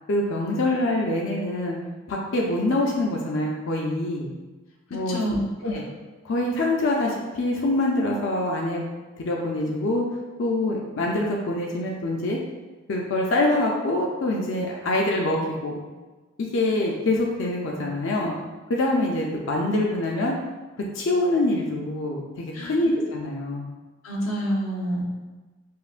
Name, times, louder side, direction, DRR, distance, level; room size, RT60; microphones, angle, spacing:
voice 1, 0.1-1.8 2.1-4.3 4.9-5.2 5.6-5.8 6.2-8.8 9.2-10.0 10.4-12.4 12.9-15.8 16.4-18.3 18.7-20.4 20.9-23.6, left 1 dB, 60° left, -2 dB, 0.4 m, -25 dB
voice 2, 4.9-5.7 22.5-22.9 24.0-25.0, equal, 90° left, -3 dB, 0.8 m, -28 dB
5.4 x 2.1 x 2.4 m, 1.2 s
head